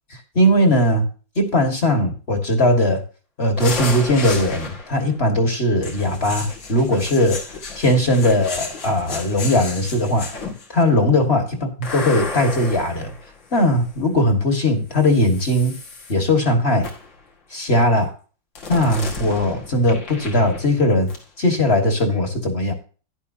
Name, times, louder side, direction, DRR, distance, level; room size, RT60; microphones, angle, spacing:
voice 1, 0.4-1.1 1.4-3.0 3.4-7.4 7.8-10.3 10.7-13.1 13.5-15.7 16.1-16.9 17.5-18.1 18.7-21.1 21.4-22.7, left 1 dB, 35° left, 5 dB, 1.9 m, -19 dB
sound 1, 3.6-5.1 5.8-10.8 11.8-14.0 14.9-16.1 16.8-17.2 18.6-20.8 21.1-21.2, left 4 dB, 80° left, 2.7 m, -33 dB
11.0 x 10.5 x 2.7 m, 0.37 s
omnidirectional pair, 2.0 m